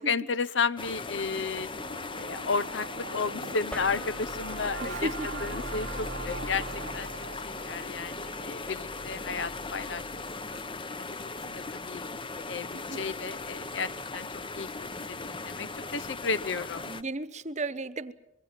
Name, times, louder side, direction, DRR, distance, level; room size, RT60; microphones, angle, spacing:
voice 1, 0.0-1.7 2.2-5.1 5.4-6.7 6.9-10.0 10.4-10.6 11.0-11.1 11.5-12.0 12.5-14.3 14.5-16.9, left 5 dB, 75° left, 0.8 m, -33 dB
sound 1, 0.8-17.0, left 3 dB, 25° left, 0.9 m, -38 dB
sound 2, 1.0-10.7, right 4 dB, 80° right, 0.9 m, -43 dB
sound 3, 3.7-10.4, equal, 5° left, 1.2 m, -44 dB
voice 2, 4.8-5.4 12.7-13.0 16.8-18.1, right 2 dB, 40° right, 1.0 m, -35 dB
24.5 x 22.5 x 7.7 m
head